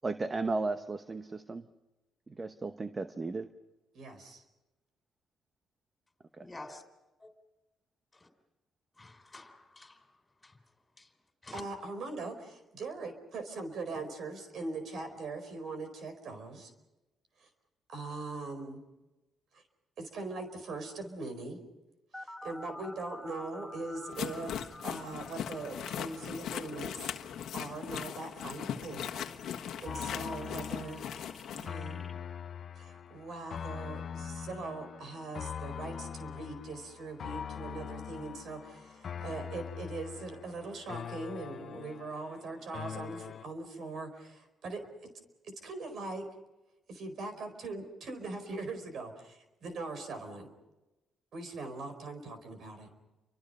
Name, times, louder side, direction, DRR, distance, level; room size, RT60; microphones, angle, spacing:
voice 1, 0.0-1.6 2.3-3.5 6.4-6.5, right 3 dB, 25° right, 10 dB, 1.0 m, -35 dB
voice 2, 3.9-4.4 11.5-16.7 17.4-17.5 17.9-18.8 19.5-19.6 20.0-21.6 22.1-27.1 27.5-29.1 29.4-31.0 31.5-32.1 32.7-45.1 45.4-46.3 46.9-50.5 51.3-52.9, right 3 dB, 65° right, 8 dB, 4.6 m, -41 dB
voice 3, 6.4-6.8 7.2-7.3 8.1-8.3 8.9-11.2 11.4-11.6 13.7-14.1, left 2 dB, 20° left, 7 dB, 3.9 m, -51 dB
sound 1, 22.1-32.1, left 1 dB, 5° left, 1.5 m, -50 dB
sound 2, 24.1-31.7, left 9 dB, 75° left, 1.4 m, -39 dB
sound 3, 29.8-43.4, left 8 dB, 55° left, 0.7 m, -42 dB
29.5 x 24.5 x 5.5 m, 1.0 s
cardioid pair, 90°, 0 cm